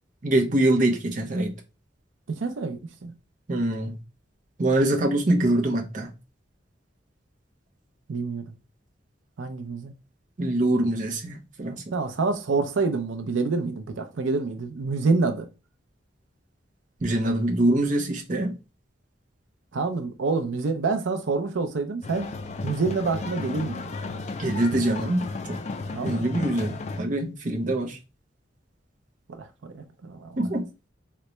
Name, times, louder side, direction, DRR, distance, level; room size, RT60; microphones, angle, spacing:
voice 1, 0.2-1.5 3.5-4.0 4.6-6.1 10.4-11.8 17.0-18.6 24.4-25.6 26.0-28.0 30.4-30.7, right 1 dB, 40° right, 0.6 m, -24 dB
voice 2, 2.3-3.1 8.1-8.4 9.4-9.9 11.9-15.5 19.7-22.3 22.6-23.8 25.9-26.2 29.3-29.5 29.7-30.3, right 4 dB, 85° right, 0.5 m, -27 dB
sound 1, 22.0-27.0, left 3 dB, 35° left, 0.3 m, -34 dB
3.9 x 2.2 x 3.0 m
head